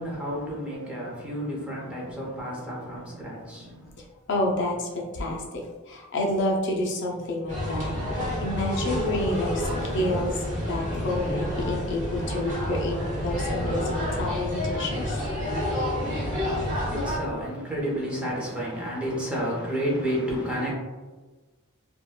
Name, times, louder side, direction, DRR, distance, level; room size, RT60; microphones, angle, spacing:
voice 1, 0.0-3.9 16.3-20.7, equal, 5° right, 0.7 m, -31 dB
voice 2, 1.8-2.1 4.0-15.3, left 1 dB, 55° left, 0.5 m, -29 dB
sound 1, 7.5-17.2, equal, 35° right, 1.1 m, -29 dB
3.5 x 2.2 x 2.2 m
head